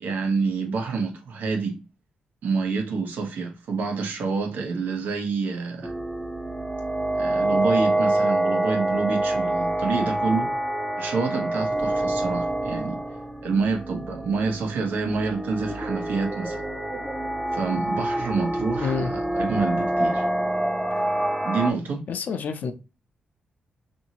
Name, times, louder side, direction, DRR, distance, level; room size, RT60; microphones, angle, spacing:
voice 1, 0.0-1.8 2.4-5.9 7.1-10.5 11.0-13.0 13.4-16.6 17.5-20.3 21.4-22.1, right 4 dB, 80° right, 0.8 m, -27 dB
sound 1, 5.8-21.7, right 1 dB, 5° right, 0.6 m, -26 dB
voice 2, 18.8-19.1 22.1-22.7, left 5 dB, 65° left, 0.5 m, -28 dB
2.7 x 2.7 x 2.8 m
cardioid pair, 100°, 3 cm